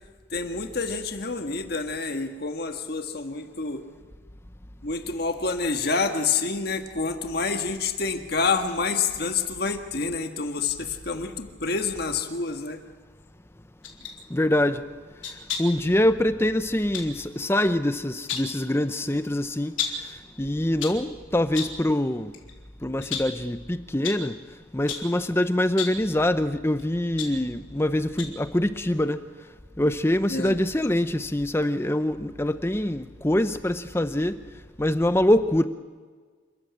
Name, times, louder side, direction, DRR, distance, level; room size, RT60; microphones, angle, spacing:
voice 1, 0.3-3.8 4.8-12.8 30.3-30.6, left 4 dB, 50° left, 1.7 m, -28 dB
sound 1, 13.8-14.2 15.2-15.8 16.9-17.1 18.0-18.6 19.8-20.1 20.6-21.1 21.5-21.9 22.3-22.5 23.0-23.4 24.0-24.3 24.9-25.2 25.7-26.1 26.8-27.8 28.2-28.5 28.8-28.9, left 6 dB, 80° left, 3.7 m, -33 dB
voice 2, 14.3-14.8 15.6-22.3 22.8-24.4 24.7-29.2 29.8-34.4 34.8-35.6, left 1 dB, 10° left, 0.6 m, -24 dB
28.5 x 14.5 x 8.8 m
head